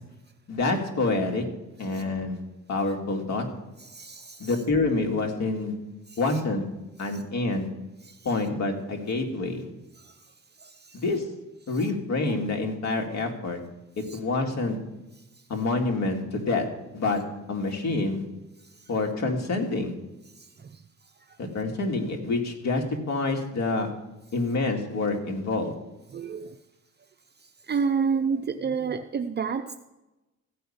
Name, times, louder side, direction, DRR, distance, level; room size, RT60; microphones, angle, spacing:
voice 1, 0.5-1.4 1.8-2.4 2.7-3.5 4.4-5.7 6.2-6.6 7.0-7.7 8.2-9.7 10.9-11.3 11.7-13.6 14.0-14.8 15.5-16.7 16.9-17.2 17.5-18.2 18.9-19.9 21.4-23.9 24.3-25.7, left 3 dB, 60° left, 3 dB, 2.3 m, -27 dB
voice 2, 3.9-4.5 8.1-8.2 10.6-11.0 20.6-20.8 26.1-26.5 27.7-29.8, right 6 dB, 35° right, 7 dB, 0.6 m, -29 dB
14.5 x 5.5 x 8.7 m, 1.0 s
cardioid pair, 90°, 30 cm